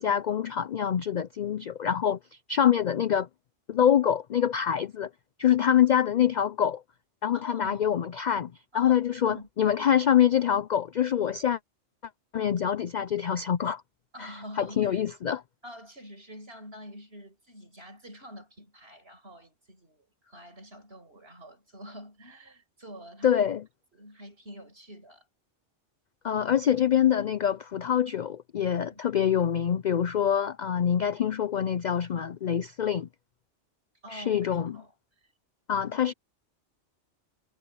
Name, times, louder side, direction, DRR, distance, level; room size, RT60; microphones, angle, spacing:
voice 1, 0.0-2.2 2.5-3.3 3.7-5.1 5.4-6.8 7.2-11.6 12.3-13.8 14.2-14.3 14.6-15.4 23.2-23.6 26.2-33.1 34.1-34.8 35.7-36.1, left 9 dB, 60° left, 0.5 m, -25 dB
voice 2, 7.3-7.9 8.7-9.0 9.2-9.8 14.1-15.0 15.6-23.4 23.9-25.2 28.9-29.0 34.0-34.5 34.7-34.9, equal, 55° right, 6.3 m, -46 dB
omnidirectional pair, 1.2 m